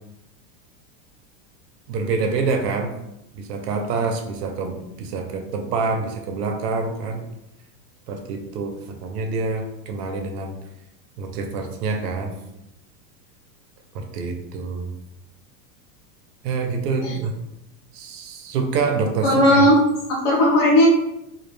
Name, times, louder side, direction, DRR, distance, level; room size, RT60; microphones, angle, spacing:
voice 1, 1.9-2.9 3.3-7.2 8.1-10.6 11.2-12.3 13.9-14.9 16.4-17.3 17.9-19.7, right 4 dB, 75° right, 4 dB, 0.6 m, -26 dB
voice 2, 19.2-19.8 20.1-20.9, equal, 50° left, -3 dB, 0.7 m, -16 dB
2.3 x 2.1 x 3.1 m, 0.86 s
supercardioid pair, 180°, 49 cm